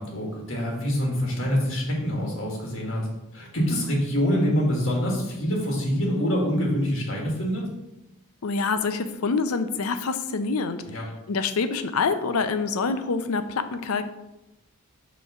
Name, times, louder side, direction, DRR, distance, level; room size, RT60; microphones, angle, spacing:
voice 1, 0.0-3.0 3.3-7.6 10.9-11.0, equal, 60° left, -2 dB, 1.7 m, -25 dB
voice 2, 8.4-10.8 11.3-14.0, left 4 dB, 85° left, 10 dB, 0.5 m, -26 dB
5.6 x 3.2 x 5.5 m, 0.94 s
head